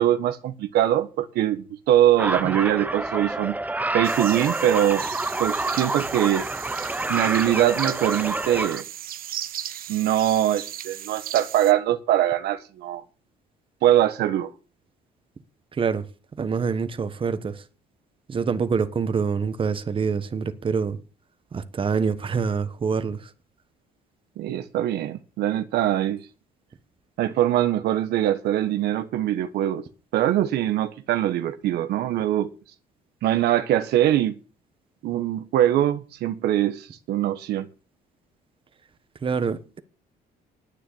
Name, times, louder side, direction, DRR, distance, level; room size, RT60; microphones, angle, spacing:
voice 1, 0.0-3.6 3.9-5.0 5.4-6.4 7.1-8.8 9.9-13.0 13.8-14.5 24.4-26.2 27.2-29.9 30.1-32.5 33.2-34.3 35.0-37.7, right 12 dB, 75° right, 1.3 m, -22 dB
sound 1, 2.2-8.8, right 2 dB, 10° right, 0.9 m, -28 dB
sound 2, 4.0-11.7, right 11 dB, 60° right, 1.0 m, -36 dB
voice 2, 15.7-16.0 16.4-17.6 18.3-21.0 21.5-23.3 39.2-39.8, right 5 dB, 30° right, 1.4 m, -26 dB
10.0 x 9.3 x 8.6 m
cardioid pair, 110°, 17 cm